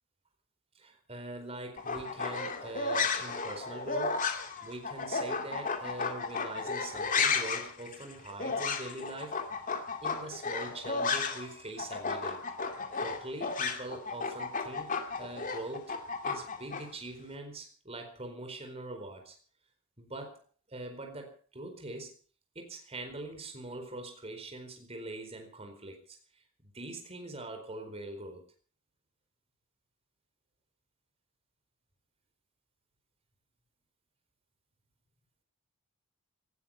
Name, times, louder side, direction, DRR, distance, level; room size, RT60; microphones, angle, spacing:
voice 1, 0.7-9.4 10.0-12.4 13.0-16.0 16.2-19.4 20.0-20.4 20.7-22.1 22.5-28.4, right 2 dB, 30° right, 4 dB, 4.4 m, -43 dB
sound 1, 1.8-11.5 11.8-16.8, left 4 dB, 40° left, 2.4 m, -33 dB
18.5 x 13.0 x 5.6 m, 0.41 s
head